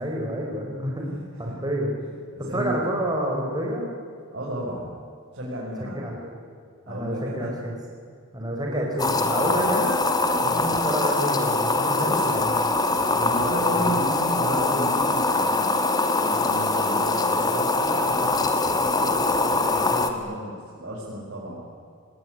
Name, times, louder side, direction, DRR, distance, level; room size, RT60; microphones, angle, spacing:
voice 1, 0.0-1.1 1.4-1.9 2.4-3.9 5.8-6.4 6.9-7.8 8.3-10.0 10.4-12.7 13.1-14.0, equal, 20° right, -1 dB, 4.6 m, -29 dB
voice 2, 1.0-1.6 2.5-2.9 4.3-5.0 5.3-6.1 6.9-7.5 8.7-8.9 9.2-10.8 11.9-12.4 13.3-21.6, right 1 dB, 55° right, -6 dB, 6.9 m, -33 dB
sound 1, 9.0-20.1, left 3 dB, 20° left, 2.0 m, -23 dB
25.5 x 21.5 x 9.9 m, 2.2 s
head